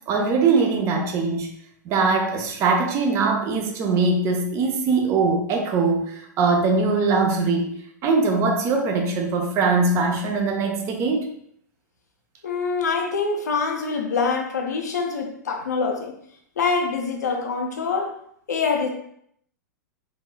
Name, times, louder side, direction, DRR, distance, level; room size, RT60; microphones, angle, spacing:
voice 1, 0.1-1.5 1.8-7.7 8.0-11.2, right 4 dB, 30° right, 3 dB, 0.6 m, -21 dB
voice 2, 12.4-16.2 16.6-18.2 18.5-18.9, left 4 dB, 65° left, 2 dB, 0.7 m, -25 dB
4.1 x 3.0 x 2.3 m, 0.69 s
figure-of-eight pair, 100°, 10 cm